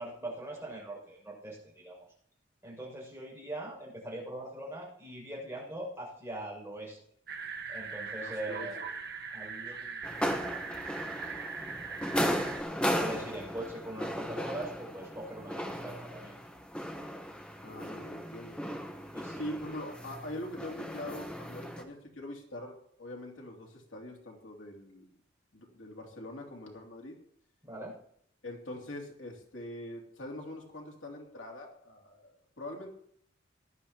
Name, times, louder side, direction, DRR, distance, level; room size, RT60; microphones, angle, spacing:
voice 1, 0.0-2.0 2.6-7.0 7.7-8.8 9.3-10.0 11.9-12.5 13.0-16.4 19.1-19.5 27.6-27.9, right 1 dB, 15° right, -3 dB, 6.5 m, -42 dB
sound 1, 7.3-12.6, right 5 dB, 55° right, 1.3 m, -40 dB
sound 2, 10.0-21.8, equal, 5° left, 1.1 m, -36 dB
voice 2, 17.6-18.6 19.4-25.1 25.5-27.2 28.4-32.9, left 1 dB, 90° left, 0 dB, 2.8 m, -43 dB
18.0 x 12.0 x 3.0 m, 0.67 s
head